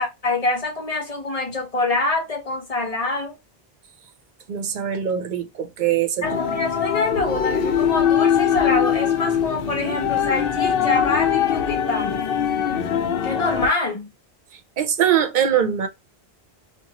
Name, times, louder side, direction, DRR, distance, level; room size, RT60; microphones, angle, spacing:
voice 1, 0.0-3.4 6.2-12.2 13.2-14.1, left 2 dB, 40° left, 1.0 m, -25 dB
voice 2, 4.5-6.6 14.8-15.9, right 9 dB, 55° right, 0.7 m, -22 dB
sound 1, 6.2-13.7, left 8 dB, 70° left, 0.7 m, -22 dB
2.6 x 2.2 x 2.8 m
omnidirectional pair, 1.0 m